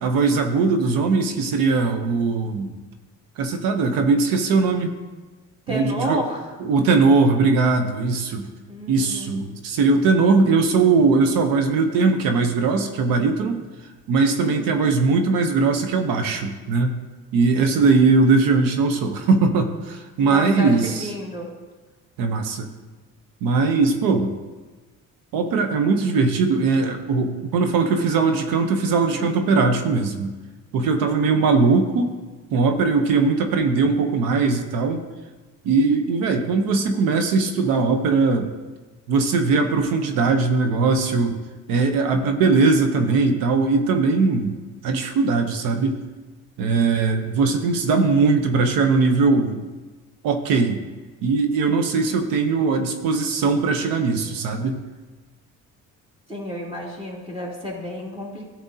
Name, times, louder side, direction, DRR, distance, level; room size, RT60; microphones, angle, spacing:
voice 1, 0.0-2.7 3.4-4.9 5.7-6.2 6.6-8.5 8.9-13.6 14.1-17.0 17.3-21.1 22.2-22.7 23.4-24.3 25.3-30.3 30.7-32.1 32.5-35.0 35.6-38.5 39.1-41.4 41.7-44.6 44.8-46.1 46.6-49.7 50.2-50.8 51.2-54.8, right 4 dB, 85° right, 5 dB, 0.9 m, -20 dB
voice 2, 5.7-6.5 8.7-9.4 14.4-14.9 20.2-21.5 56.3-58.5, equal, 15° right, -3 dB, 2.6 m, -31 dB
12.0 x 7.6 x 2.8 m, 1.3 s
cardioid pair, 90°, 33 cm